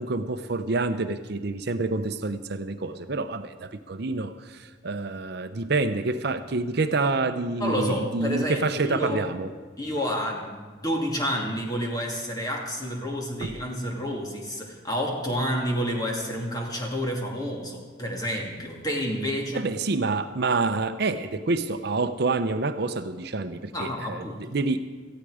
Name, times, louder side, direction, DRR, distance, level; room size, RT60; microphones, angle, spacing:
voice 1, 0.0-9.5 13.4-13.5 19.5-24.8, right 3 dB, 60° right, 9 dB, 0.7 m, -27 dB
voice 2, 7.6-9.2 9.8-19.6 23.7-24.6, equal, 20° left, 0 dB, 2.5 m, -29 dB
18.0 x 14.5 x 4.9 m, 1.4 s
head